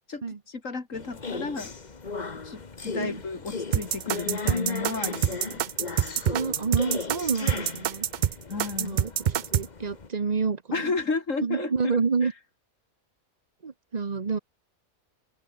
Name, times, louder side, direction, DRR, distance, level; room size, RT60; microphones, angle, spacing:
voice 1, 0.1-1.7 2.4-5.6 8.5-9.0 10.7-11.7, left 4 dB, 65° left, 3.1 m, -33 dB
sound 1, 0.9-10.1, left 4 dB, 30° left, 1.5 m, -36 dB
sound 2, 3.7-9.7, right 10 dB, 80° right, 0.4 m, -26 dB
voice 2, 6.2-8.1 8.8-10.9 11.4-12.3 13.6-14.4, right 5 dB, 30° right, 1.1 m, -29 dB
open air
omnidirectional pair, 1.5 m